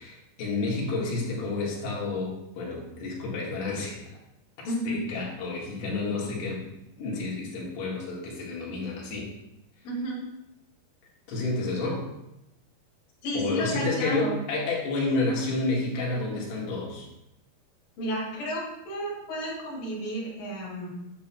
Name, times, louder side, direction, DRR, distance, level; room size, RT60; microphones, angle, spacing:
voice 1, 0.0-4.0 4.9-6.6 7.0-9.3 11.3-12.0 13.3-17.1, left 3 dB, 80° left, -4 dB, 3.8 m, -30 dB
voice 2, 4.6-5.0 9.8-10.2 13.2-14.4 18.0-20.9, equal, 60° left, -6 dB, 3.9 m, -32 dB
9.9 x 7.3 x 2.3 m, 0.88 s
omnidirectional pair, 4.7 m